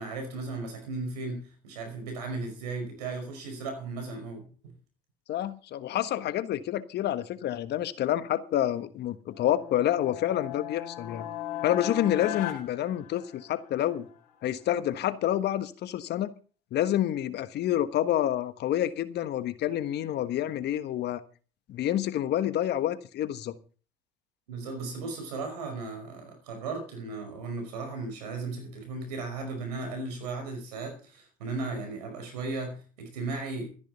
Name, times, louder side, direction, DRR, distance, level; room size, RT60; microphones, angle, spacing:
voice 1, 0.0-4.7 24.5-33.7, right 3 dB, 85° right, 5 dB, 5.4 m, -36 dB
voice 2, 5.3-11.3 11.6-14.1 14.4-16.3 16.7-21.2 21.7-23.5, left 12 dB, 55° left, 13 dB, 1.4 m, -28 dB
sound 1, 9.3-13.7, left 10 dB, 75° left, 2.9 m, -37 dB
13.5 x 10.5 x 5.6 m, 0.39 s
hypercardioid pair, 70°, 20 cm